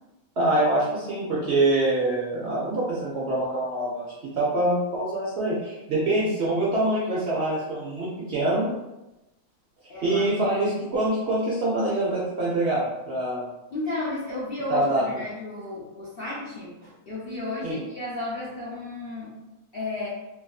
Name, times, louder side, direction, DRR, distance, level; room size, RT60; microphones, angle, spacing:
voice 1, 0.4-8.7 10.0-13.5 14.7-15.0 17.6-17.8, right 1 dB, 60° right, -6 dB, 0.8 m, -25 dB
voice 2, 9.9-10.3 13.7-19.3 19.7-20.1, left 2 dB, 50° left, -7 dB, 0.7 m, -33 dB
2.8 x 2.5 x 2.3 m, 0.99 s
omnidirectional pair, 1.5 m